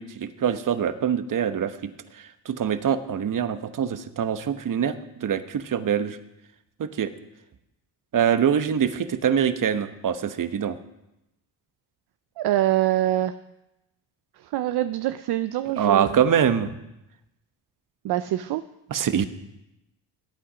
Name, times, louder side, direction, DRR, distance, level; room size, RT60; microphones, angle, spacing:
voice 1, 0.0-4.9 5.2-6.2 6.8-7.1 8.1-10.8 15.8-16.7 18.9-19.2, right 8 dB, 50° right, 11 dB, 1.0 m, -24 dB
voice 2, 12.4-13.3 14.4-16.2 18.0-18.6, right 13 dB, 65° right, 12 dB, 0.6 m, -25 dB
17.5 x 8.6 x 5.1 m, 0.91 s
cardioid pair, 80°, 42 cm